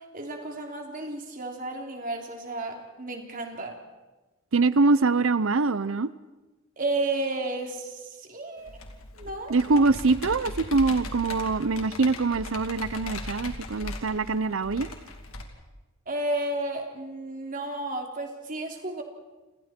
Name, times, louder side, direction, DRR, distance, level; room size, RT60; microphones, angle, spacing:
voice 1, 0.1-3.7 6.8-8.8 9.1-9.5 16.1-19.0, right 2 dB, 40° right, 2 dB, 3.4 m, -32 dB
voice 2, 4.5-6.1 9.5-14.9, right 3 dB, 70° right, 16 dB, 0.7 m, -24 dB
Computer keyboard, 8.7-15.4, left 2 dB, 85° left, 2.9 m, -39 dB
29.5 x 27.5 x 4.5 m, 1.2 s
head